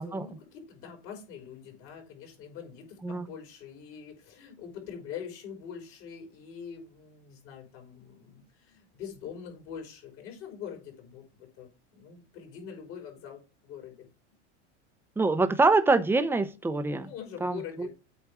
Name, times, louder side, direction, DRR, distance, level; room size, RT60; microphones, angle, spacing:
voice 1, 0.0-14.1 17.0-17.9, left 7 dB, 60° left, 4.5 m, -44 dB
voice 2, 15.2-17.1 17.4-17.9, right 3 dB, 5° right, 0.8 m, -25 dB
8.4 x 4.2 x 5.0 m
hypercardioid pair, 100°, 35 cm